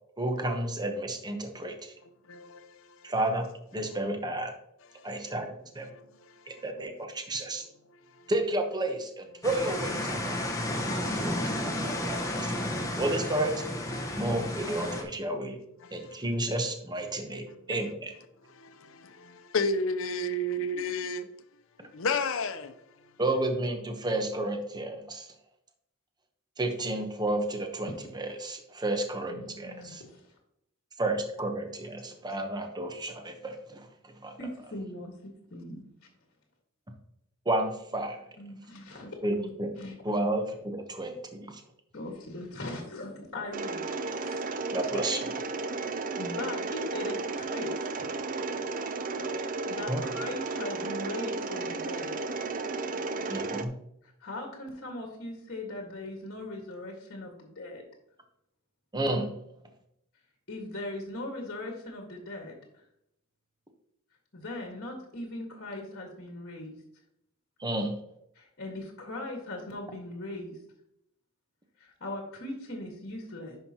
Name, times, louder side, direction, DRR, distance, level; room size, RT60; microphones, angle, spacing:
voice 1, 0.2-1.9 3.0-4.5 5.0-5.9 6.6-7.6 8.3-10.4 10.9-12.7 13.0-13.5 14.1-15.6 15.9-18.1 23.2-25.3 26.6-27.9 28.1-30.0 31.0-33.8 34.2-34.3 37.5-38.2 39.2-39.7 40.0-41.5 44.7-45.2 49.9-50.0 53.3-53.7 58.9-59.3 67.6-68.0, right 1 dB, 20° right, 0.9 m, -31 dB
voice 2, 2.3-3.1 5.0-5.3 5.9-6.6 7.2-7.3 7.9-8.3 12.8-13.0 14.0-14.2 15.8-16.2 17.5-17.6 18.4-18.7 19.5-21.3 21.9-22.7 23.0-23.1, left 2 dB, 65° left, 0.7 m, -34 dB
sound 1, 9.4-15.0, left 1 dB, 15° left, 1.1 m, -32 dB
voice 3, 29.3-30.3 34.4-35.1 35.5-35.8 38.4-40.0 41.9-43.8 44.1-44.4 44.9-45.0 46.2-48.1 49.7-52.1 54.0-57.8 60.5-62.8 64.3-66.8 68.3-70.6 71.8-73.6, left 2 dB, 50° left, 1.6 m, -39 dB
Mechanisms, 43.5-53.6, right 3 dB, 40° right, 0.5 m, -33 dB
10.5 x 5.7 x 2.9 m
head